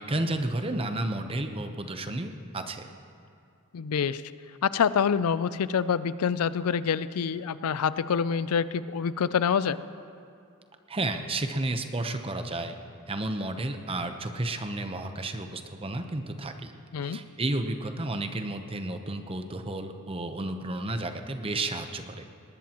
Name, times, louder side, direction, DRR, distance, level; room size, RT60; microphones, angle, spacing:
voice 1, 0.0-2.9 10.9-12.7 13.1-16.7 17.0-22.2, right 2 dB, 25° right, 7 dB, 0.8 m, -32 dB
voice 2, 3.7-4.2 4.6-9.8 16.9-17.2, left 7 dB, 75° left, 15 dB, 0.4 m, -26 dB
20.0 x 18.5 x 3.0 m, 2.5 s
head